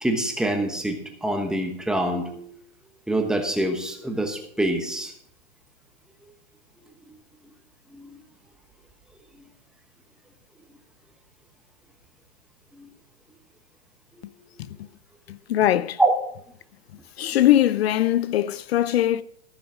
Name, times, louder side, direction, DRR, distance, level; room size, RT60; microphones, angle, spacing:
voice 1, 0.0-2.5 3.1-5.1 7.9-8.2 12.8-12.9 16.0-16.1, right 1 dB, ahead, 1.1 m, -25 dB
voice 2, 15.3-16.0 17.2-19.2, left 12 dB, 65° left, 0.6 m, -21 dB
14.5 x 6.2 x 6.2 m
hypercardioid pair, 150°, 33 cm